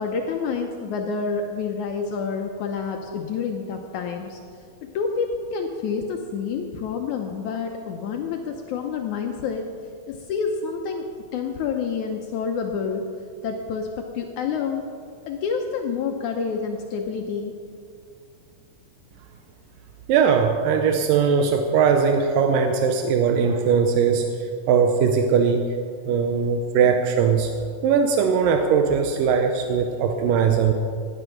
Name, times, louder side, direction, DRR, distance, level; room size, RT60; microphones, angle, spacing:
voice 1, 0.0-4.4 4.9-9.7 10.1-11.0 11.3-13.1 13.4-14.8 15.3-17.6, left 5 dB, 70° left, 3 dB, 2.1 m, -28 dB
voice 2, 20.1-24.3 24.7-25.7 26.1-27.5 27.8-30.7, right 6 dB, 90° right, 5 dB, 2.5 m, -20 dB
17.5 x 10.0 x 5.8 m, 2.2 s
omnidirectional pair, 3.8 m